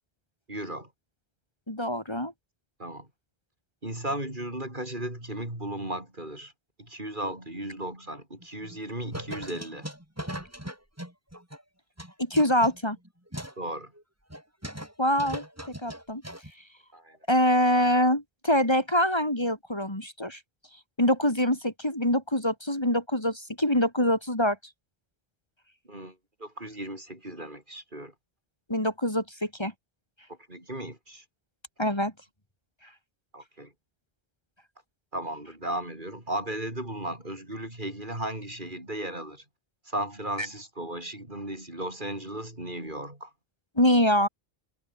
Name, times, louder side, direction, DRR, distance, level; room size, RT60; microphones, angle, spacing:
voice 1, 0.5-0.9 2.8-3.1 3.8-6.5 6.8-9.9 13.6-13.9 16.9-17.2 25.9-28.1 30.3-31.2 33.3-33.7 35.1-39.4 39.8-43.3, right 1 dB, 50° right, 6.7 m, -36 dB
voice 2, 1.7-2.3 12.2-13.0 15.0-15.4 15.8-16.2 17.3-20.4 21.0-24.6 28.7-29.7 31.8-32.1 43.8-44.3, left 1 dB, 25° left, 3.6 m, -24 dB
sound 1, 8.4-8.8 9.1-11.6 12.0-13.6 13.9-14.0 14.3-14.9 15.2-16.5, equal, 15° right, 5.4 m, -39 dB
omnidirectional pair, 1.0 m